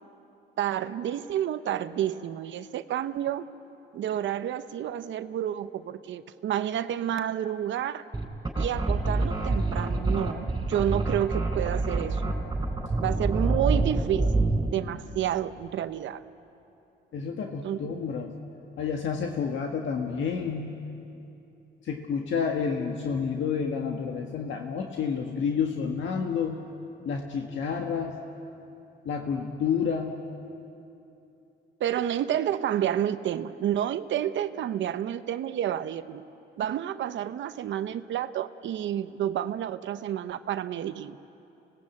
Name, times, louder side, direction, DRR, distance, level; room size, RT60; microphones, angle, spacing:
voice 1, 0.6-3.5 3.9-8.0 8.6-12.3 13.0-14.3 14.7-16.2 17.6-18.0 31.8-36.2 36.6-41.2, right 10 dB, 70° right, 11 dB, 0.8 m, -30 dB
sound 1, 8.1-14.8, right 2 dB, 20° right, 4.0 m, -26 dB
voice 2, 17.1-18.3 18.8-20.7 21.8-26.6 27.0-28.2 29.0-30.1, left 6 dB, 75° left, 2 dB, 1.7 m, -29 dB
25.0 x 18.5 x 8.4 m, 2.8 s
cardioid pair, 90°, 20 cm